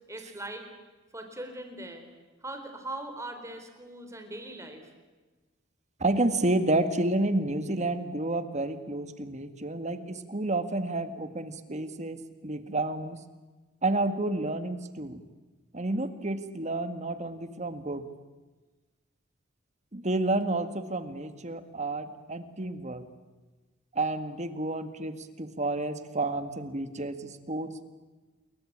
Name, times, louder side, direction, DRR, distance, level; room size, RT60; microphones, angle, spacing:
voice 1, 0.1-0.7 1.1-2.0 2.4-4.9, right 1 dB, 15° right, 6 dB, 4.1 m, -40 dB
voice 2, 6.0-13.2 13.8-15.2 15.7-18.1 19.9-23.0 23.9-27.8, right 2 dB, 35° right, 10 dB, 1.8 m, -30 dB
28.5 x 23.0 x 8.8 m, 1.2 s
head